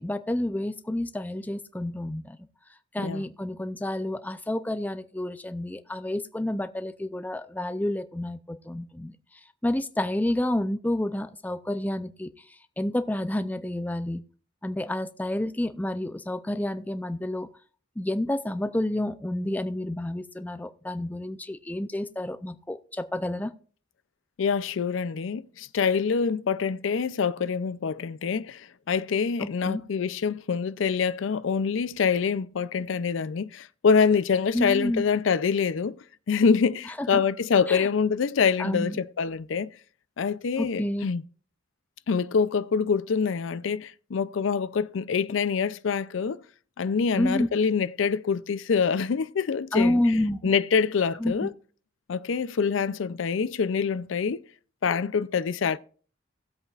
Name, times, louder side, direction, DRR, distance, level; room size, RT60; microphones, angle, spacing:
voice 1, 0.0-2.4 2.9-9.1 9.6-12.3 12.8-14.2 14.6-17.5 18.0-23.5 29.4-29.8 34.5-35.0 37.0-37.2 37.7-37.9 38.6-39.0 40.6-41.0 47.2-47.5 49.7-50.5 51.2-51.5, left 1 dB, 10° left, 0.4 m, -29 dB
voice 2, 24.4-28.6 28.9-36.0 36.3-39.7 40.2-41.2 42.1-46.4 46.8-50.0 50.4-51.5 52.1-54.4 54.8-55.8, left 6 dB, 85° left, 0.4 m, -25 dB
18.0 x 8.0 x 2.4 m
head